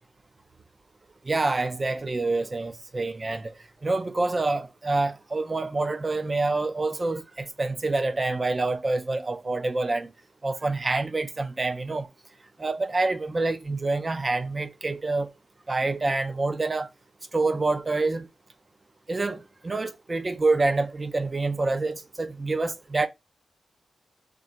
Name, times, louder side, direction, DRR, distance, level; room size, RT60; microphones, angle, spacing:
voice 1, 1.3-3.5 3.8-10.1 10.4-12.1 12.6-15.3 15.7-16.9 17.3-18.3 19.1-23.1, right 3 dB, 30° right, 0.5 m, -27 dB
3.8 x 2.1 x 4.3 m
cardioid pair, 90°, 0 cm